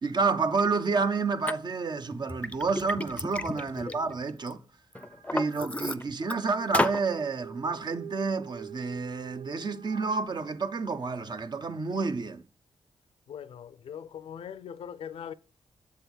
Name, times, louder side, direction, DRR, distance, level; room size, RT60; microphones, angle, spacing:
voice 1, 0.0-4.6 5.3-12.4, right 4 dB, 50° right, 0.7 m, -29 dB
Liquid, 1.5-1.6 2.1-4.5 4.9-6.4 6.7-7.0, left 1 dB, 15° left, 0.5 m, -32 dB
voice 2, 3.5-4.2 13.3-15.3, left 8 dB, 75° left, 0.5 m, -42 dB
sound 1, 4.9-5.7 6.2-10.2, right 9 dB, 90° right, 0.5 m, -46 dB
7.2 x 3.4 x 6.1 m
cardioid pair, 50°, 10 cm